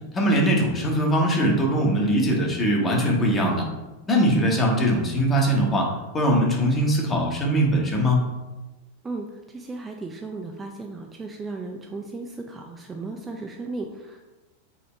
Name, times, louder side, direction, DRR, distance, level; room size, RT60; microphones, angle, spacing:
voice 1, 0.1-3.6 4.1-5.9 6.1-8.2, equal, 20° left, -1 dB, 1.0 m, -21 dB
voice 2, 9.5-14.3, right 3 dB, 15° right, 2 dB, 0.4 m, -35 dB
4.1 x 2.8 x 4.3 m, 1.1 s
figure-of-eight pair, 90°, 0 cm